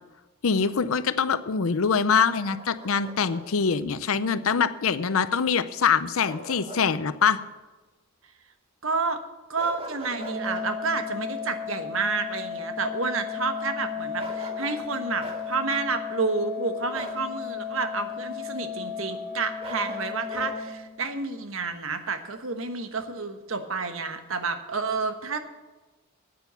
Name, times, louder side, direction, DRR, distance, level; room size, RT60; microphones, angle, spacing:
voice 1, 0.4-7.4, left 6 dB, 80° left, 14 dB, 0.6 m, -24 dB
Bark, 2.4-3.4 6.3-6.9 7.2-7.4 9.6-10.6 14.2-14.8 15.2-15.4 16.9-17.2 19.6-20.5, right 1 dB, 30° right, 2.0 m, -39 dB
voice 2, 8.8-9.2 9.5-25.4, right 4 dB, 70° right, 8 dB, 1.2 m, -30 dB
Organ, 10.1-21.1, left 6 dB, 50° right, 4.7 m, -35 dB
9.2 x 9.1 x 6.9 m, 1.2 s
head